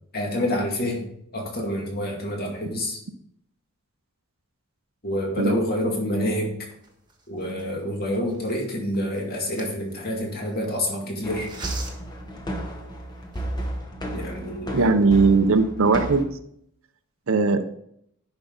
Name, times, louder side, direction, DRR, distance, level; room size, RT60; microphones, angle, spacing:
voice 1, 0.1-1.1 1.3-3.0 5.0-6.6 7.3-11.5 14.1-14.9, equal, 45° left, 0 dB, 2.1 m, -27 dB
sound 1, 6.7-10.7 11.4-12.2 12.8-12.9 13.2-13.8, right 4 dB, 20° right, 1.3 m, -43 dB
sound 2, 11.2-16.2, right 1 dB, 20° left, 1.0 m, -33 dB
voice 2, 14.7-16.3 17.3-17.6, right 4 dB, 65° right, 9 dB, 0.7 m, -19 dB
10.5 x 5.4 x 3.9 m, 0.71 s
head